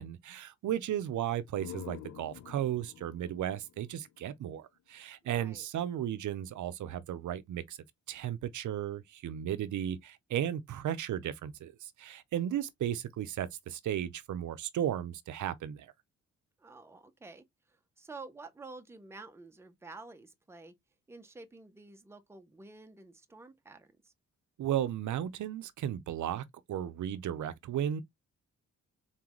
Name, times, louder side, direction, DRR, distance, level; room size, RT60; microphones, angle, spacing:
voice 1, 0.0-7.8 8.1-15.9 24.6-28.0, right 10 dB, 80° right, 0.6 m, -35 dB
sound 1, 1.2-4.9, left 11 dB, 65° left, 0.5 m, -49 dB
voice 2, 5.2-5.7 16.6-20.8 21.1-24.1, right 3 dB, 10° right, 0.5 m, -50 dB
4.0 x 3.8 x 2.9 m
wide cardioid pair, 175°, 30 cm